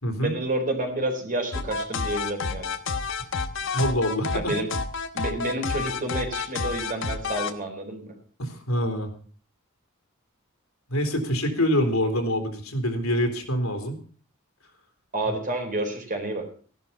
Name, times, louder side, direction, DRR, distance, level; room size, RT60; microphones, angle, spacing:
voice 1, 0.2-2.7 4.3-4.7 5.1-8.1 15.1-16.5, right 1 dB, 40° right, 3 dB, 4.2 m, -29 dB
sound 1, 1.5-7.5, left 4 dB, 65° left, 1.3 m, -29 dB
voice 2, 3.7-4.5 8.4-9.1 10.9-14.0 15.3-15.4, equal, 85° left, 5 dB, 3.5 m, -25 dB
15.5 x 11.5 x 5.7 m, 0.42 s
head